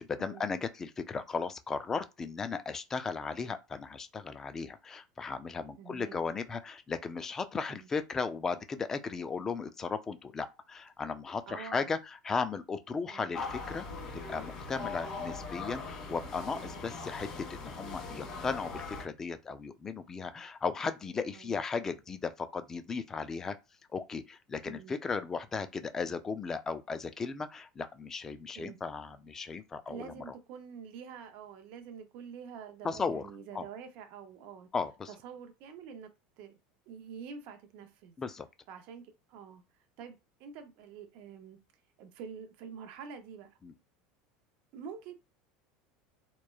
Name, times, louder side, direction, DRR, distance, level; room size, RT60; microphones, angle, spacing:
voice 1, 0.0-13.9 14.3-23.6 23.9-30.3 32.8-33.3 33.5-33.7 34.7-35.1 38.2-38.5 43.6-43.7, left 5 dB, 20° left, 0.3 m, -36 dB
voice 2, 5.8-6.2 7.7-7.9 11.5-11.9 13.1-13.3 18.2-18.4 21.3-21.5 24.6-25.0 28.5-28.8 29.9-34.7 35.1-36.1 36.4-36.5 36.9-38.1 38.7-39.6 40.0-41.6 42.0-43.6 44.7-45.1, right 7 dB, 60° right, 0.5 m, -47 dB
sound 1, 13.3-19.1, left 4 dB, 35° left, 1.2 m, -40 dB
3.0 x 2.1 x 2.3 m
supercardioid pair, 130°, 2 cm